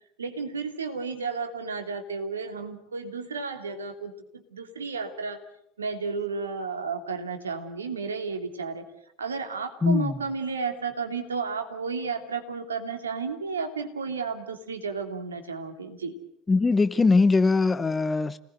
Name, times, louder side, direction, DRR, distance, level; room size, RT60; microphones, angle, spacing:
voice 1, 0.2-5.4 5.8-8.8 9.2-16.1, right 4 dB, 75° right, 6 dB, 3.0 m, -32 dB
voice 2, 9.8-10.2 16.5-18.4, left 3 dB, 15° left, 15 dB, 0.9 m, -21 dB
29.5 x 19.5 x 8.0 m, 0.72 s
figure-of-eight pair, 70°, 0 cm